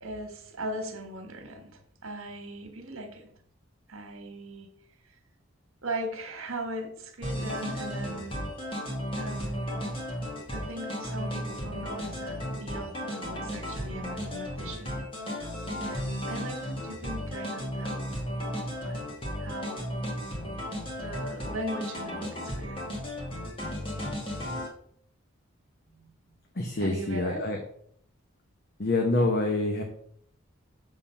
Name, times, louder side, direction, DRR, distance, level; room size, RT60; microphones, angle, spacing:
voice 1, 0.0-3.3 3.9-4.7 5.8-8.4 9.2-9.7 10.5-15.0 15.8-18.2 18.8-19.0 19.4-19.8 21.0-22.9 25.9-26.1 26.7-27.4 29.2-29.3, right 1 dB, 85° right, 5 dB, 1.5 m, -39 dB
sound 1, 7.2-24.7, equal, 25° left, 1.6 m, -34 dB
voice 2, 26.6-27.6 28.8-29.8, left 2 dB, 50° left, 2 dB, 0.9 m, -26 dB
7.2 x 3.8 x 5.7 m, 0.65 s
head